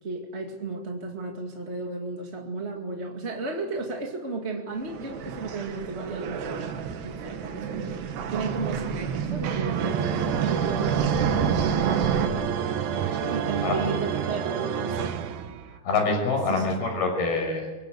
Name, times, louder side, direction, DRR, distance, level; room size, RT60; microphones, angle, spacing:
voice 1, 0.0-10.1 10.4-11.1 11.8-12.2 13.3-15.2 16.5-16.7, right 3 dB, 25° right, 1 dB, 1.6 m, -34 dB
sound 1, 4.8-12.3, right 7 dB, 90° right, 3.9 m, -29 dB
sound 2, 9.8-15.8, right 8 dB, 60° right, 2.2 m, -29 dB
voice 2, 13.1-13.8 15.8-17.7, left 3 dB, 65° left, 4 dB, 8.0 m, -26 dB
25.5 x 23.5 x 8.2 m, 1.2 s
omnidirectional pair, 4.7 m